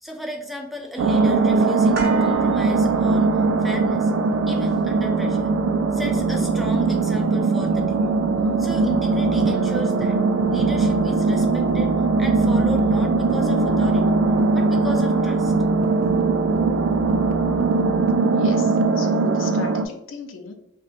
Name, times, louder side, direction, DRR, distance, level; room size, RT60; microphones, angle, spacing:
voice 1, 0.0-4.1 4.5-5.5 5.9-8.1 8.4-10.2 10.5-14.1 14.5-15.5, left 1 dB, ahead, 2 dB, 0.3 m, -35 dB
sound 1, 1.0-19.9, right 3 dB, 85° right, 0.3 m, -20 dB
sound 2, 1.9-10.0 10.3-10.4, right 4 dB, 55° right, 0.6 m, -37 dB
voice 2, 18.4-20.5, left 4 dB, 75° left, 5 dB, 0.5 m, -36 dB
3.9 x 2.2 x 2.5 m, 0.83 s
head